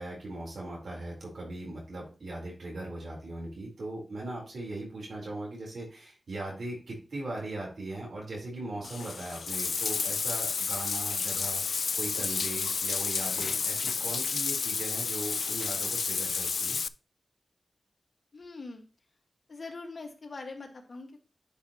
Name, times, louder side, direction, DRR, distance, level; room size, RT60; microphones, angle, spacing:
voice 1, 0.0-16.8, right 2 dB, 85° right, -3 dB, 3.7 m, -39 dB
Bathtub (filling or washing), 8.8-16.9, left 5 dB, 90° left, 0.3 m, -31 dB
voice 2, 18.3-18.8 19.5-21.2, left 3 dB, 60° left, 3 dB, 1.6 m, -42 dB
10.5 x 5.7 x 2.9 m, 0.33 s
wide cardioid pair, 80°, 0 cm